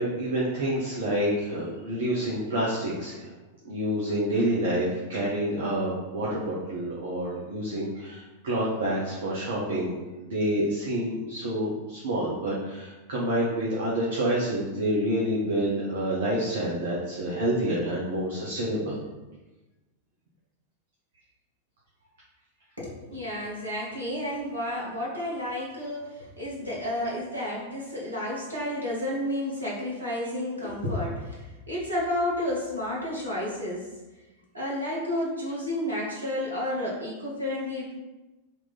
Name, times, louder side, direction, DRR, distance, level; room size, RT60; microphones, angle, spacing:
voice 1, 0.0-3.3 3.6-9.9 10.2-19.0, right 1 dB, 60° right, -5 dB, 0.9 m, -28 dB
voice 2, 22.8-33.9 34.5-37.9, left 1 dB, 80° right, -6 dB, 1.4 m, -31 dB
3.8 x 3.0 x 4.0 m, 1.1 s
figure-of-eight pair, 90°, 0 cm